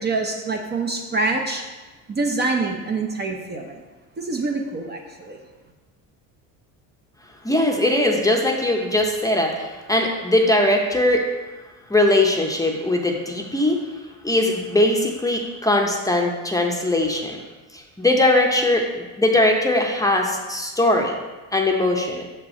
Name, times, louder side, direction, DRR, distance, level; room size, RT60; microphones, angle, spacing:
voice 1, 0.0-1.6 2.1-3.8 4.2-5.4, right 3 dB, 25° right, 2 dB, 0.7 m, -25 dB
voice 2, 7.4-11.3 11.9-17.4 17.7-21.2 21.5-22.2, left 1 dB, 10° left, 1 dB, 0.7 m, -20 dB
6.1 x 4.5 x 4.3 m, 1.2 s
supercardioid pair, 95°, 38 cm